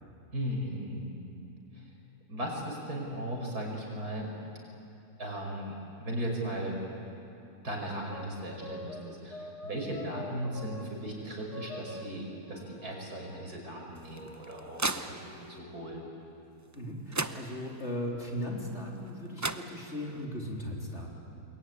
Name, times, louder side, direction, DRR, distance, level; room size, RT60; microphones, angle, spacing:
voice 1, 0.3-1.0 1.7-1.9 2.3-4.3 5.2-5.7 6.0-6.7 7.6-16.0, right 1 dB, 75° right, 0 dB, 5.9 m, -37 dB
sound 1, 7.7-10.9 11.5-13.5 14.1-16.1, left 1 dB, 90° left, 2.6 m, -46 dB
sound 2, 14.0-15.6 16.7-16.8 17.1-17.9 19.1-19.2 19.4-20.2, right 3 dB, 30° right, 0.3 m, -36 dB
voice 2, 16.7-21.1, equal, 45° left, -1 dB, 3.8 m, -37 dB
29.0 x 22.0 x 9.4 m, 2.8 s
omnidirectional pair, 1.6 m